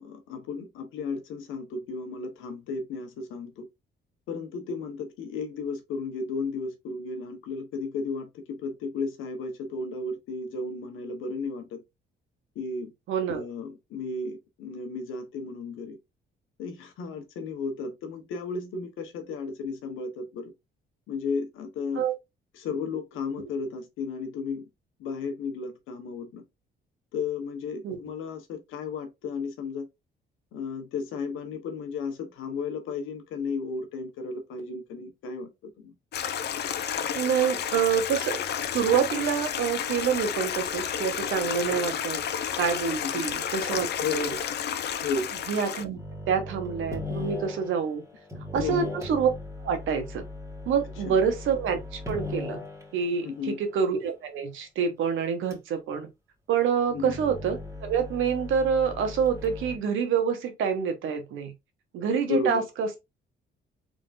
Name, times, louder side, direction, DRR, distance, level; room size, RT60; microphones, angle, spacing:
voice 1, 0.0-3.7 4.3-11.8 12.5-12.9 13.3-16.0 16.6-20.5 21.1-22.0 22.5-24.6 25.0-26.4 27.1-29.9 30.5-35.9 43.0-43.2 44.0-44.4 45.0-45.3 48.6-48.9 51.0-51.2 53.2-53.6 56.9-57.1 62.3-62.6, left 4 dB, 90° left, 1.1 m, -34 dB
voice 2, 13.1-13.4 22.0-22.1 27.8-28.0 37.1-38.4 38.7-42.2 42.6-44.3 45.5-46.0 46.3-48.0 48.5-49.3 49.6-50.2 50.6-52.6 52.9-56.1 56.5-61.5 61.9-62.9, right 7 dB, 80° right, 1.1 m, -27 dB
Stream, 36.1-45.8, left 8 dB, 55° left, 0.5 m, -31 dB
sound 1, 46.0-53.0 55.5-55.6 56.9-59.8, left 2 dB, 15° right, 1.7 m, -38 dB
3.7 x 3.6 x 2.5 m
cardioid pair, 90°, 20 cm